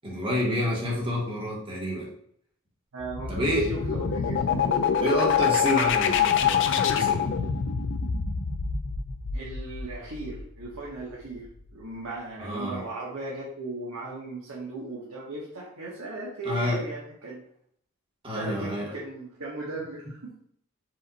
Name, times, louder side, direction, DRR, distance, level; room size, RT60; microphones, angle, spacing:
voice 1, 0.0-2.1 3.3-3.7 5.0-7.3 12.4-12.8 16.4-16.8 18.2-18.9, equal, 25° right, -3 dB, 1.3 m, -28 dB
voice 2, 2.9-4.6 9.3-11.5 11.7-17.4 18.3-20.3, right 2 dB, 80° right, -5 dB, 1.1 m, -37 dB
sound 1, 3.0-10.6, left 7 dB, 55° left, 0.4 m, -26 dB
4.9 x 2.6 x 4.0 m, 0.67 s
head